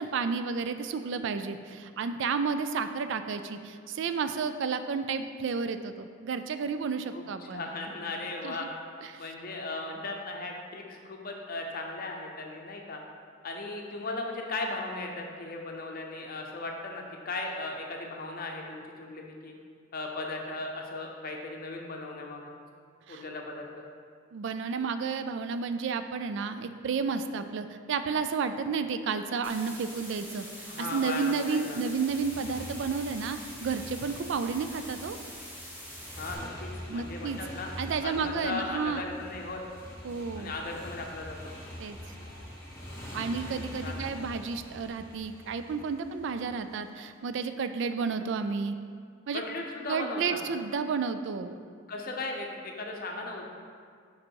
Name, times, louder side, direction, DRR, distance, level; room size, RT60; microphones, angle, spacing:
voice 1, 0.0-7.6 8.4-8.6 9.0-9.2 23.1-23.2 24.3-35.2 36.9-37.4 37.8-39.0 40.0-40.5 41.8-42.0 43.1-48.8 49.3-49.4 49.9-51.6, right 5 dB, 55° right, 9 dB, 0.3 m, -31 dB
voice 2, 7.1-8.7 9.2-13.0 13.4-19.5 19.9-22.6 23.1-23.9 30.7-31.8 36.2-37.7 38.0-39.6 40.4-41.6 43.6-44.3 49.3-50.4 51.9-53.5, left 2 dB, 45° left, 1 dB, 0.7 m, -37 dB
sound 1, 29.4-36.3, equal, 10° right, 0.8 m, -44 dB
Motorcycle, 31.7-46.9, equal, 10° left, 1.4 m, -44 dB
5.4 x 5.1 x 4.6 m, 2.1 s
head